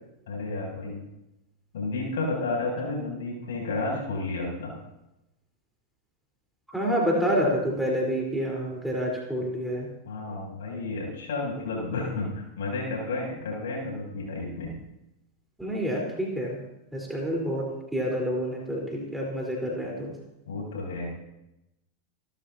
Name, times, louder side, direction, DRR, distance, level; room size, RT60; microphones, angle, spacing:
voice 1, 0.3-1.0 1.7-4.7 10.0-14.8 20.4-21.1, left 2 dB, 60° left, -2 dB, 7.5 m, -31 dB
voice 2, 6.7-9.9 15.6-16.6 16.9-20.1, equal, 5° right, -2 dB, 4.1 m, -28 dB
29.0 x 13.5 x 2.8 m, 0.90 s
figure-of-eight pair, 90°, 0 cm